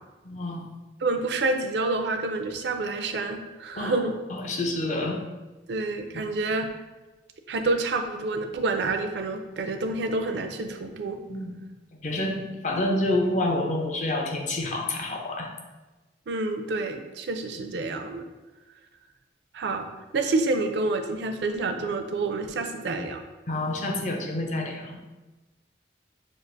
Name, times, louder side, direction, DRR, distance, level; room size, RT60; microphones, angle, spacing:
voice 1, 0.2-0.6 3.8-4.0 4.3-5.2 11.3-11.5 12.0-15.5 23.5-25.0, left 1 dB, 40° left, 2 dB, 0.5 m, -28 dB
voice 2, 1.0-4.2 5.7-6.7 7.5-11.2 16.3-18.2 19.5-19.9 20.1-23.2, right 3 dB, 70° right, 5 dB, 0.4 m, -28 dB
6.2 x 2.4 x 2.5 m, 1.2 s
head